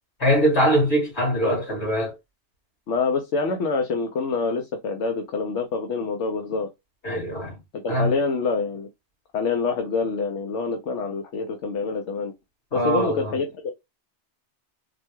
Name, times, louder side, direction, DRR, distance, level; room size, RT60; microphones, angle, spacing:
voice 1, 0.2-2.2 7.0-7.6 7.9-8.1 12.7-13.4, equal, 65° left, 2.6 m, -22 dB
voice 2, 2.9-6.7 7.7-8.9 9.3-12.3 12.7-13.7, left 4 dB, 80° left, 1.0 m, -26 dB
4.3 x 2.2 x 2.9 m
omnidirectional pair, 1.2 m